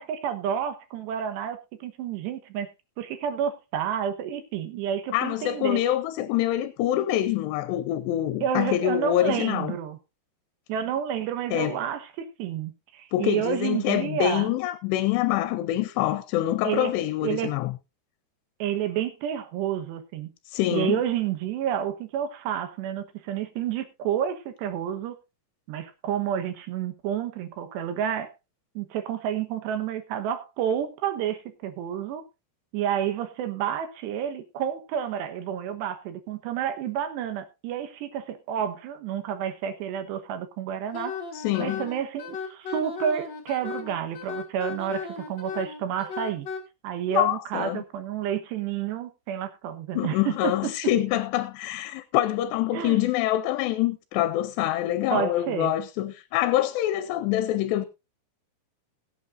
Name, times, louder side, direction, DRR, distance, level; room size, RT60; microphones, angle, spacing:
voice 1, 0.0-2.7 3.0-5.8 8.4-10.0 10.7-14.5 16.6-16.9 17.2-17.6 18.6-20.3 20.7-25.2 25.7-28.3 28.8-32.3 32.7-41.2 41.6-46.5 46.8-50.7 52.7-53.0 55.1-55.7, right 9 dB, 80° right, 3.4 m, -30 dB
voice 2, 5.1-9.8 11.5-11.8 13.1-17.7 20.5-21.0 41.3-41.8 45.5-45.6 47.1-47.8 49.9-57.9, left 14 dB, 80° left, 2.9 m, -25 dB
Wind instrument woodwind instrument, 40.9-46.6, left 5 dB, 35° left, 2.1 m, -35 dB
21.0 x 8.4 x 2.6 m
omnidirectional pair, 4.9 m